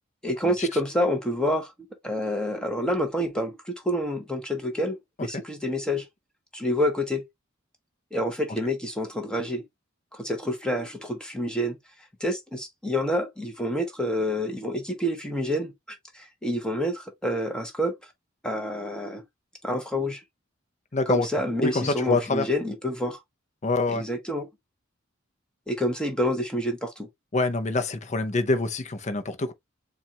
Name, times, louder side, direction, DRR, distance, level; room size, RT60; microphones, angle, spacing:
voice 1, 0.2-1.7 2.0-6.1 6.5-7.2 8.1-9.6 10.1-11.8 12.2-17.9 18.4-19.2 19.6-20.2 21.1-23.2 23.9-24.5 25.7-27.1, equal, 5° left, 0.9 m, -28 dB
voice 2, 20.9-21.3 21.6-22.5 23.6-24.0 27.3-29.5, left 3 dB, 35° left, 0.7 m, -26 dB
7.0 x 2.4 x 2.8 m
head